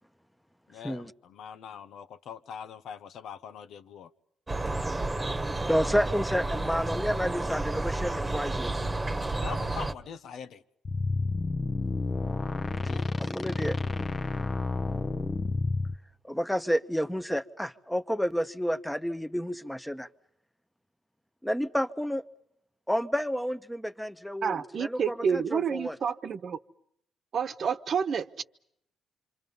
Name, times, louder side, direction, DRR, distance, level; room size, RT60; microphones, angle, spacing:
voice 1, 0.7-4.1 9.4-10.6 12.9-13.1, left 8 dB, 75° left, 1.2 m, -43 dB
sound 1, 4.5-9.9, right 2 dB, 15° right, 1.5 m, -31 dB
voice 2, 5.7-8.7 12.5-13.8 16.3-20.1 21.4-22.2 22.9-25.9, equal, ahead, 1.2 m, -30 dB
sound 2, 10.8-15.9, left 3 dB, 30° left, 1.0 m, -30 dB
voice 3, 24.4-26.6 27.3-28.4, right 7 dB, 55° right, 1.2 m, -29 dB
27.0 x 26.5 x 5.5 m
cardioid pair, 95°, 0 cm